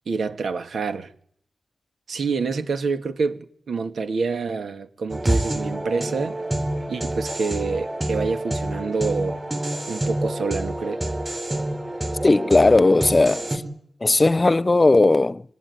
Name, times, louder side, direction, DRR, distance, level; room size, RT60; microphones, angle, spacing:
voice 1, 0.1-1.1 2.1-6.4 6.9-9.4 9.9-11.1, right 4 dB, 75° right, 2.4 m, -27 dB
sound 1, 5.1-13.6, right 1 dB, 25° right, 7.9 m, -27 dB
voice 2, 12.2-13.6 14.0-15.4, left 2 dB, 35° left, 1.1 m, -17 dB
26.0 x 23.5 x 9.8 m
cardioid pair, 55°, 0 cm